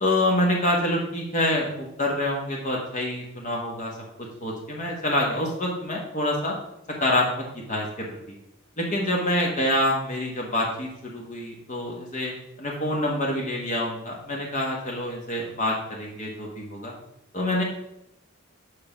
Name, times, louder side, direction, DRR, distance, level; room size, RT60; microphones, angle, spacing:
voice 1, 0.0-4.0 4.4-6.5 7.0-8.1 8.8-12.3 12.6-16.9 17.3-17.6, left 1 dB, 40° left, -1 dB, 1.4 m, -26 dB
6.6 x 5.2 x 6.0 m, 0.83 s
head